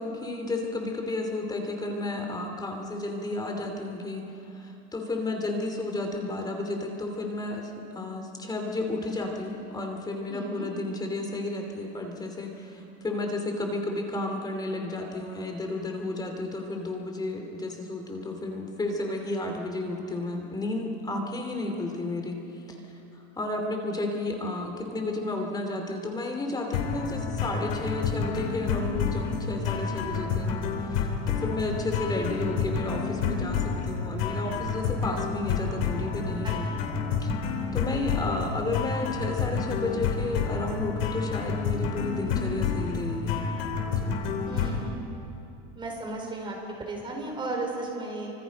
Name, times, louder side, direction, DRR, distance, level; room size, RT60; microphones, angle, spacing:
voice 1, 0.0-36.7 37.2-37.3 37.7-43.4 43.9-44.2, left 2 dB, 15° left, 3 dB, 2.5 m, -32 dB
voice 2, 10.3-10.7 36.4-36.5 36.8-36.9 44.4-45.2 45.7-48.3, right 2 dB, 15° right, 0 dB, 4.7 m, -35 dB
sound 1, 26.7-44.9, left 5 dB, 90° left, 3.1 m, -29 dB
29.5 x 25.5 x 5.1 m, 2.8 s
supercardioid pair, 150°, 30 cm